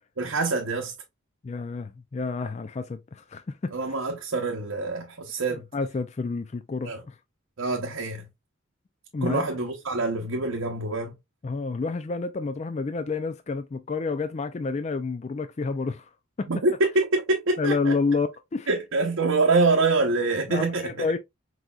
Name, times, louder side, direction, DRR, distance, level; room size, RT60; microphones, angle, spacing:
voice 1, 0.2-0.9 3.7-5.6 6.8-7.0 7.6-8.3 9.2-11.2 16.5-17.9 18.7-21.0, right 3 dB, 80° right, 0.8 m, -25 dB
voice 2, 1.4-3.7 5.5-7.2 9.1-9.4 11.4-16.1 16.4-16.5 17.6-18.7 20.5-21.2, left 4 dB, 35° left, 0.3 m, -29 dB
4.6 x 4.0 x 2.3 m
head